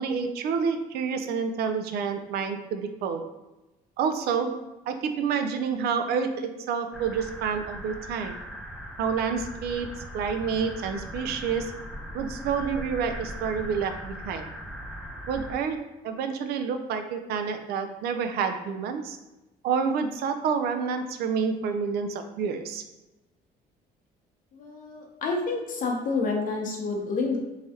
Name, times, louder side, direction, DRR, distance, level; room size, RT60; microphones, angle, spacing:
voice 1, 0.0-3.2 4.0-8.4 9.0-11.8 12.1-14.5 15.3-19.2 19.6-22.8, right 6 dB, 70° right, 7 dB, 0.4 m, -29 dB
sound 1, 6.9-15.5, equal, ahead, 0.4 m, -39 dB
voice 2, 24.5-27.4, left 3 dB, 50° left, 1 dB, 0.7 m, -29 dB
3.2 x 2.3 x 2.7 m, 1.0 s
cardioid pair, 110°, 17 cm